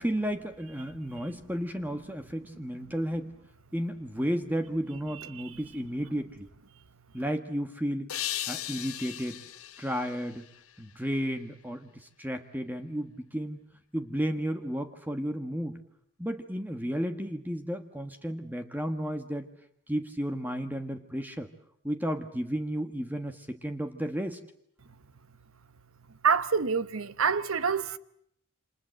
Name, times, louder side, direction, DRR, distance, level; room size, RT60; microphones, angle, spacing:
voice 1, 0.0-3.3 3.7-6.5 7.1-8.1 8.5-9.4 9.8-10.4 10.8-13.6 13.9-15.8 16.2-19.5 19.9-21.5 21.8-24.4, equal, 10° right, 1.3 m, -33 dB
sound 1, 8.1-11.2, left 13 dB, 75° left, 1.2 m, -38 dB
voice 2, 26.2-28.0, right 6 dB, 70° right, 1.1 m, -26 dB
28.5 x 26.5 x 7.6 m
head